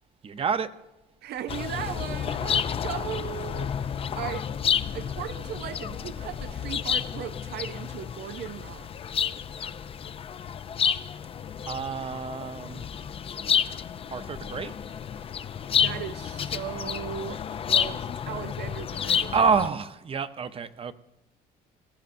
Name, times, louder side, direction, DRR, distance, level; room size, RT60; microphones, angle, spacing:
voice 1, 0.2-0.7 2.5-2.6 11.7-12.8 14.1-14.7 19.3-20.9, right 5 dB, 35° right, 0.7 m, -28 dB
voice 2, 1.2-3.8 4.1-4.5 4.9-8.9 15.8-19.3, right 11 dB, 75° right, 0.6 m, -37 dB
sound 1, 1.5-19.7, left 8 dB, 35° left, 0.4 m, -30 dB
19.0 x 14.0 x 2.6 m
cardioid pair, 110°, 17 cm